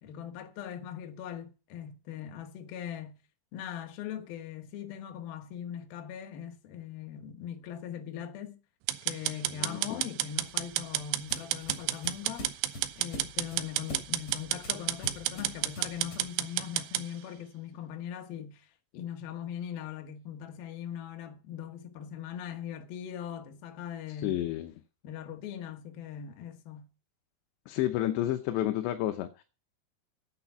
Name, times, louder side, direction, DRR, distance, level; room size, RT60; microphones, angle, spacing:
voice 1, 0.0-3.2 3.5-8.6 9.0-12.5 13.0-18.7 18.9-24.4 25.0-26.9, left 9 dB, 65° left, 3.0 m, -40 dB
sound 1, 8.9-17.1, right 15 dB, 80° right, 2.9 m, -31 dB
voice 2, 9.5-10.0 24.2-24.7 27.7-29.4, left 13 dB, 80° left, 3.0 m, -31 dB
sound 2, 10.3-16.4, left 2 dB, 40° left, 3.6 m, -45 dB
9.0 x 8.9 x 7.1 m
omnidirectional pair, 5.2 m